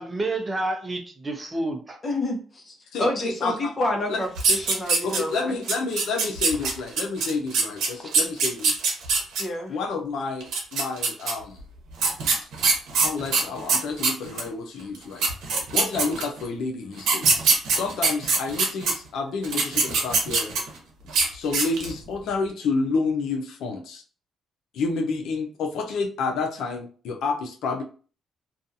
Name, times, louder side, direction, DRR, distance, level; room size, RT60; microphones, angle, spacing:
voice 1, 0.0-2.0 6.6-6.8 8.0-8.1, right 2 dB, 25° right, 0.6 m, -30 dB
voice 2, 2.0-5.6 9.4-9.8, left 1 dB, 35° left, 0.8 m, -28 dB
voice 3, 2.9-3.7 4.1-4.2 5.0-8.8 9.7-11.6 12.9-15.3 15.7-17.4 17.7-20.5 21.3-24.0 24.7-27.8, left 4 dB, 80° left, 0.5 m, -29 dB
sound 1, 4.4-5.4 5.7-9.4 10.4-11.3 12.0-14.5 14.9-15.0 15.2-16.4 17.0-18.9 19.4-20.8 21.1-21.3 21.5-22.0, right 4 dB, 85° right, 0.8 m, -22 dB
2.6 x 2.3 x 2.6 m
cardioid pair, 90°, 0 cm